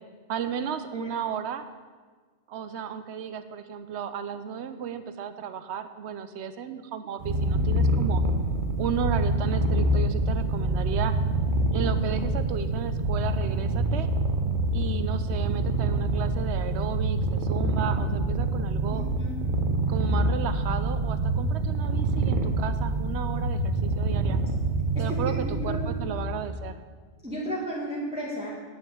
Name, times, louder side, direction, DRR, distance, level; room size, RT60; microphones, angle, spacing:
voice 1, 0.3-1.6 2.5-8.2 8.8-11.2 11.7-14.1 14.7-19.0 19.9-24.4 25.0-26.8, right 7 dB, 70° right, 11 dB, 1.0 m, -34 dB
Purr, 7.2-26.5, right 2 dB, 45° right, 1.1 m, -26 dB
voice 2, 18.9-19.4 25.0-26.0 27.2-28.5, equal, 5° right, -6 dB, 1.9 m, -34 dB
9.8 x 5.5 x 8.0 m, 1.5 s
omnidirectional pair, 1.2 m